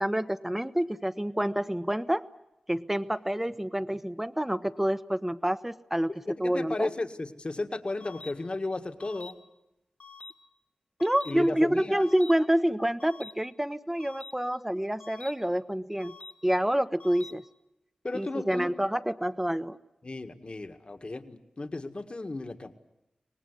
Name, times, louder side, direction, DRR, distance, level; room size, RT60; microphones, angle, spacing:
voice 1, 0.0-2.2 2.7-6.1 6.4-6.9 11.0-16.1 16.4-17.4 18.1-19.8, equal, 10° right, 13 dB, 1.0 m, -28 dB
voice 2, 6.1-9.4 11.3-12.0 18.0-18.7 20.0-22.7, left 2 dB, 45° left, 7 dB, 1.9 m, -34 dB
sound 1, 8.0-8.3 9.0-9.3 10.0-10.3 11.0-11.3 12.0-12.3 13.0-13.3 14.0-14.3 15.0-15.3 16.0-16.3 17.0-17.3, left 4 dB, 80° left, 2.4 m, -46 dB
25.0 x 19.0 x 9.8 m, 0.88 s
cardioid pair, 45°, 2 cm